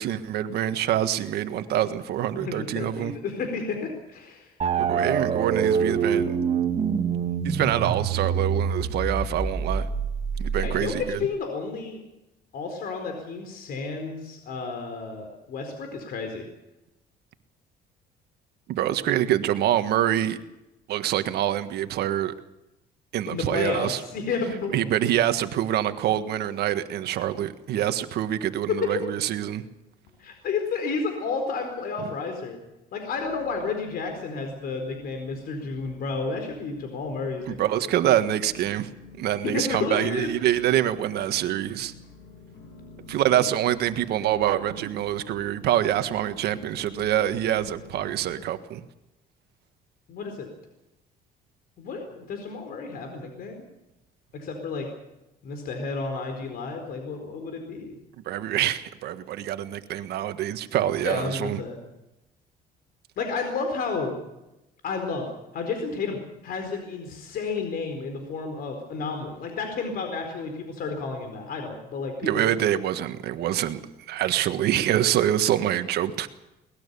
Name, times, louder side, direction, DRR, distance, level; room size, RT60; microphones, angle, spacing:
voice 1, 0.0-3.1 4.8-6.4 7.4-9.9 10.4-11.2 18.7-20.4 20.9-22.3 23.1-24.0 24.7-29.6 37.5-38.9 39.2-41.9 43.1-48.8 58.2-61.6 72.2-73.8 74.1-76.3, right 12 dB, 70° right, 10 dB, 1.6 m, -25 dB
voice 2, 2.4-4.5 10.6-12.0 12.5-16.5 23.3-24.8 28.8-28.9 30.2-32.6 32.9-37.6 39.4-40.3 43.3-43.4 50.1-50.5 51.8-53.6 54.3-54.9 55.4-58.0 61.0-61.8 63.2-64.2 64.8-65.3 65.5-66.2 66.4-72.5, left 4 dB, 65° left, 5 dB, 4.4 m, -31 dB
sound 1, 4.6-11.3, right 6 dB, 40° right, 2.4 m, -26 dB
sound 2, 30.0-30.9 31.2-31.8 32.3-32.4 33.2-48.3, left 4 dB, 90° left, 7.1 m, -49 dB
22.5 x 20.0 x 7.0 m, 0.95 s
cardioid pair, 110°, 17 cm